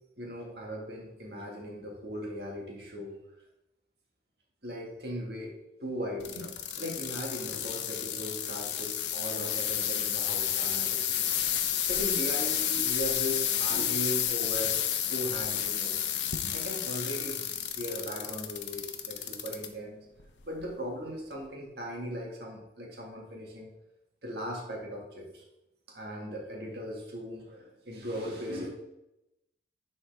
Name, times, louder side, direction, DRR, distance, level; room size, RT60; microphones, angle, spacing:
voice 1, 0.2-3.2 4.6-5.5 5.8-6.5 6.8-11.2 11.9-17.5 17.8-20.0 20.4-23.7 24.2-25.4 25.9-28.7, equal, 65° right, -1 dB, 1.8 m, -38 dB
sound 1, 6.2-19.7 20.2-20.6 21.3-21.4, left 10 dB, 85° left, 0.7 m, -31 dB
10.0 x 4.3 x 3.4 m, 0.91 s
head